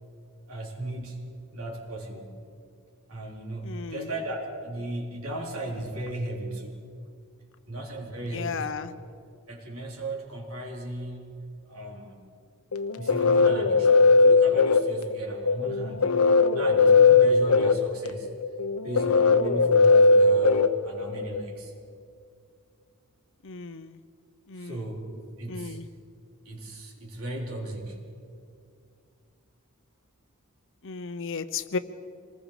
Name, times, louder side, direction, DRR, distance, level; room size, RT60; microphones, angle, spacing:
voice 1, 0.5-1.2 1.5-2.4 3.1-6.7 7.7-8.8 9.5-11.2 11.7-12.2 12.9-16.1 16.5-18.3 18.8-21.7 24.6-25.0 25.4-25.8 26.5-28.0, right 1 dB, 75° right, 0 dB, 4.0 m, -36 dB
voice 2, 3.6-4.1 8.3-8.9 23.4-24.0 24.5-24.9 25.5-25.9 30.8-31.8, left 5 dB, 60° left, 12 dB, 0.9 m, -34 dB
sound 1, 12.7-21.4, left 4 dB, 90° left, 0.9 m, -19 dB
26.0 x 20.0 x 5.1 m, 2.4 s
head